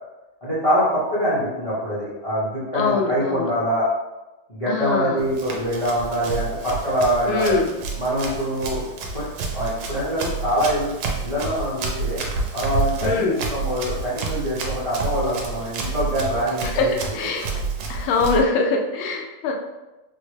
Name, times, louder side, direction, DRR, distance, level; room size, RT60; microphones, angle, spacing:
voice 1, 0.4-3.9 4.5-7.6 8.0-8.8 9.1-9.2 9.5-10.9 11.2-12.2 12.5-16.9, equal, 55° left, -11 dB, 0.3 m, -24 dB
voice 2, 2.7-3.5 4.7-5.2 7.3-7.7 13.0-13.4 16.7-17.5 17.9-19.5, left 4 dB, 85° left, 2 dB, 1.4 m, -23 dB
Run, 5.2-18.4, right 4 dB, 85° right, 1.4 m, -29 dB
4.0 x 2.1 x 3.1 m, 1.1 s
omnidirectional pair, 2.2 m